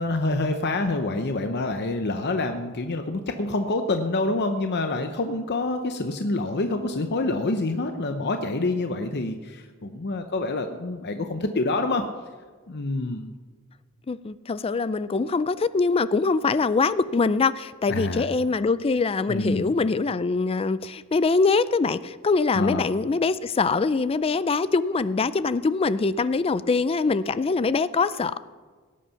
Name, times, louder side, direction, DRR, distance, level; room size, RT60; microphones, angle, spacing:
voice 1, 0.0-12.0 12.7-13.3 17.9-18.3 19.3-19.7 22.5-22.8, left 2 dB, 50° left, 6 dB, 0.8 m, -27 dB
voice 2, 14.1-28.4, left 4 dB, 25° left, 16 dB, 0.3 m, -23 dB
18.0 x 8.5 x 5.8 m, 1.5 s
head